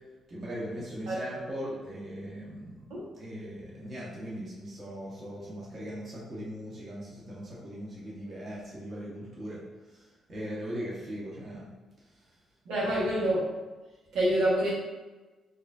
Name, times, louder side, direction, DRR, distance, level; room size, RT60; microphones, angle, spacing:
voice 1, 0.3-9.6 9.9-11.7 12.8-13.0, equal, 40° right, -7 dB, 1.2 m, -39 dB
voice 2, 1.1-1.4 2.9-3.0 12.6-13.4 14.1-14.7, right 1 dB, 90° right, -7 dB, 1.3 m, -27 dB
4.6 x 2.7 x 2.5 m, 1.2 s
cardioid pair, 120°, 0 cm